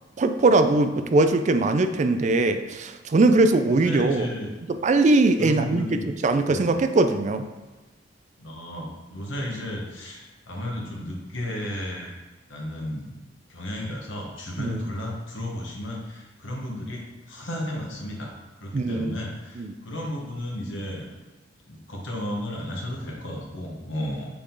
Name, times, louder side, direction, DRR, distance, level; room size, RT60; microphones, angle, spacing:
voice 1, 0.2-4.3 4.7-7.5 14.6-14.8 18.7-19.1 19.6-19.7, right 2 dB, 40° right, 9 dB, 0.4 m, -21 dB
voice 2, 3.7-4.5 5.4-6.1 6.5-6.7 8.4-12.1 12.5-13.1 13.5-18.3 18.6-21.0 21.7-24.3, left 1 dB, 90° left, -1 dB, 1.4 m, -33 dB
6.7 x 3.7 x 3.9 m, 1.2 s
head